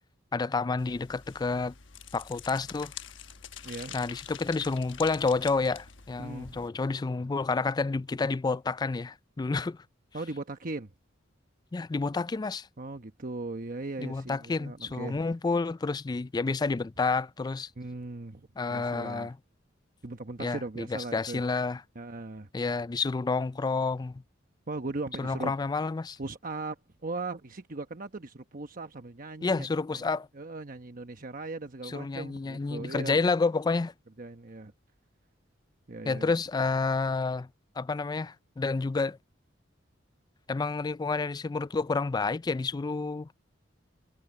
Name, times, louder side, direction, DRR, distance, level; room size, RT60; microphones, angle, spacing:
voice 1, 0.3-1.7 2.1-2.9 3.9-9.8 11.7-12.7 14.0-17.7 18.6-19.4 20.4-20.9 21.1-21.8 22.5-24.2 25.2-26.2 29.4-30.3 31.8-33.9 36.1-37.5 37.8-39.2 40.5-43.3, left 4 dB, 20° left, 0.3 m, -29 dB
sound 1, 0.8-6.7, left 8 dB, 70° left, 1.2 m, -46 dB
voice 2, 3.6-4.0 6.2-6.7 10.1-10.9 12.8-15.2 17.8-19.3 20.0-21.4 21.9-22.5 24.7-25.5 26.2-29.7 29.9-30.1 30.3-33.2 34.2-34.7 35.9-36.3, right 3 dB, 45° right, 1.0 m, -38 dB
head